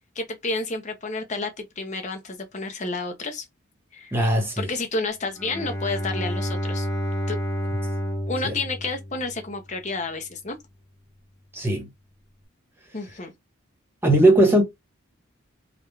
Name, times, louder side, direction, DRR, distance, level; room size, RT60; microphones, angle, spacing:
voice 1, 0.2-3.5 3.9-4.1 4.6-6.9 7.3-7.4 8.3-10.6 12.9-13.3, left 3 dB, 35° left, 0.8 m, -30 dB
voice 2, 4.1-4.7 8.4-8.5 11.5-11.9 14.0-14.6, right 1 dB, 10° right, 1.0 m, -18 dB
Bowed string instrument, 5.4-9.7, equal, 15° left, 1.5 m, -29 dB
3.6 x 2.3 x 3.2 m
head